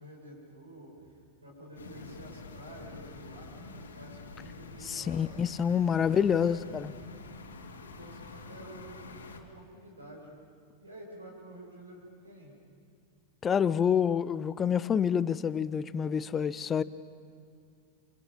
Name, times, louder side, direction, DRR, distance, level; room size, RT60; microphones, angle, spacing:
voice 1, 0.0-5.2 5.7-6.7 7.7-10.3 10.8-12.5, right 1 dB, 80° right, -3 dB, 7.0 m, -49 dB
sound 1, 1.8-9.4, left 3 dB, 70° left, 2.7 m, -47 dB
voice 2, 4.9-6.9 13.4-16.8, left 7 dB, 20° left, 17 dB, 0.8 m, -27 dB
28.5 x 27.5 x 7.3 m, 2.3 s
figure-of-eight pair, 90°, 0 cm